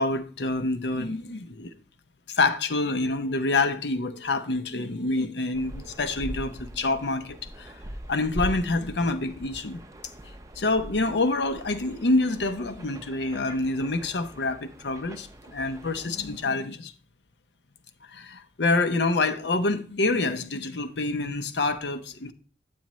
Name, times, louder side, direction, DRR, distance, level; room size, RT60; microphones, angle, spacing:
voice 1, 0.0-1.7 2.3-7.8 8.1-9.8 10.6-16.9 18.1-22.3, left 2 dB, 85° left, 0.7 m, -27 dB
sound 1, 5.5-16.5, right 1 dB, 20° right, 0.5 m, -41 dB
8.8 x 8.5 x 3.0 m
head